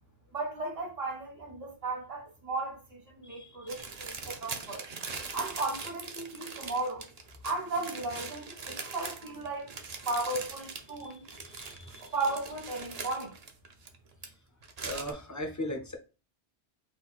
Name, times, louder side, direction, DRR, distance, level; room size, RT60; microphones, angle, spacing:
voice 1, 0.3-4.8 5.3-7.1 7.4-9.7 10.1-11.3 12.0-13.3, right 2 dB, 65° right, 1.8 m, -35 dB
voice 2, 3.2-3.9 11.0-12.1 14.8-16.0, left 1 dB, 20° left, 0.6 m, -39 dB
sound 1, 3.7-14.3 14.6-15.1, right 4 dB, 45° right, 0.7 m, -41 dB
4.2 x 2.6 x 4.0 m
omnidirectional pair, 1.1 m